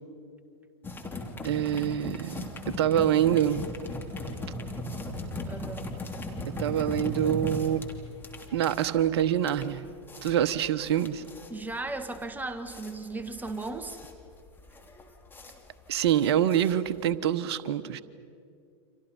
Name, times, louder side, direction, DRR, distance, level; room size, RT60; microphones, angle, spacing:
sound 1, 0.8-17.1, left 1 dB, 15° left, 3.1 m, -38 dB
voice 1, 1.4-3.7 6.5-7.8 8.5-9.9 10.2-11.2 15.9-18.0, right 10 dB, 65° right, 13 dB, 1.1 m, -26 dB
voice 2, 5.4-6.0 11.5-14.0, right 2 dB, 10° right, 8 dB, 1.7 m, -36 dB
30.0 x 26.5 x 5.6 m, 2.4 s
hypercardioid pair, 90°, 15 cm